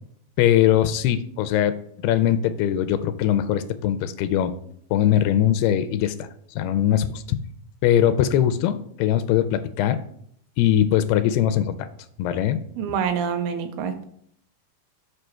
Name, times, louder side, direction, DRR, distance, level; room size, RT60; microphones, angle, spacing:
voice 1, 0.4-1.8 2.0-4.6 4.9-6.3 6.6-7.4 7.8-10.0 10.6-11.9 12.2-12.6, left 11 dB, 85° left, 11 dB, 2.5 m, -21 dB
voice 2, 12.8-14.0, right 7 dB, 80° right, 7 dB, 2.5 m, -26 dB
6.5 x 4.9 x 4.4 m, 0.67 s
omnidirectional pair, 4.6 m